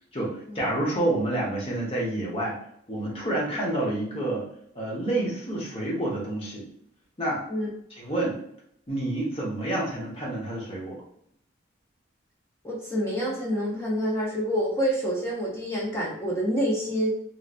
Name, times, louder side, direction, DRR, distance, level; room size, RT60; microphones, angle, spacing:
voice 1, 0.1-2.6 2.9-4.5 4.7-6.6 7.2-7.4 7.9-8.4 8.9-11.0, right 1 dB, 30° left, -4 dB, 1.0 m, -28 dB
voice 2, 12.6-17.1, equal, 15° left, -4 dB, 0.7 m, -27 dB
3.1 x 2.9 x 2.4 m, 0.71 s
head